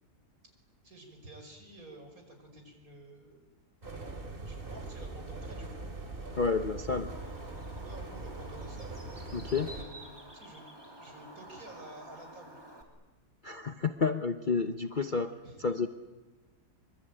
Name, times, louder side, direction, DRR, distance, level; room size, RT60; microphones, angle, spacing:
voice 1, 0.8-3.4 4.4-5.9 7.8-9.0 9.6-10.6 11.0-12.6 15.4-15.6, right 2 dB, 60° right, 4 dB, 5.8 m, -51 dB
sound 1, 3.8-9.8, right 2 dB, 35° right, 3.0 m, -41 dB
voice 2, 6.4-7.1 9.3-9.7 13.4-15.3 15.6-15.9, left 4 dB, 35° left, 8 dB, 0.9 m, -30 dB
Bird, 7.1-12.8, right 1 dB, 15° right, 3.0 m, -50 dB
25.5 x 24.0 x 8.9 m, 1.3 s
omnidirectional pair, 1.7 m